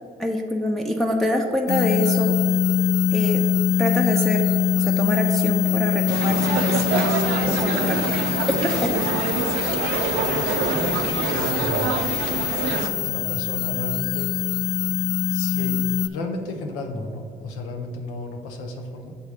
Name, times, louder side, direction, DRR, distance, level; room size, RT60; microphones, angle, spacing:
voice 1, 0.2-2.4 3.1-3.5 3.8-4.4 4.7-7.1 7.5-8.0 8.6-9.0, equal, ahead, 0 dB, 0.8 m, -25 dB
sound 1, 1.7-16.1, left 9 dB, 55° left, 0.4 m, -23 dB
sound 2, 6.1-12.9, right 6 dB, 80° right, 0.5 m, -26 dB
voice 2, 10.3-12.1 13.0-14.3 15.3-15.8 16.0-19.1, left 2 dB, 85° left, 4 dB, 0.7 m, -32 dB
6.7 x 3.4 x 6.0 m, 2.3 s
hypercardioid pair, 45°, 21 cm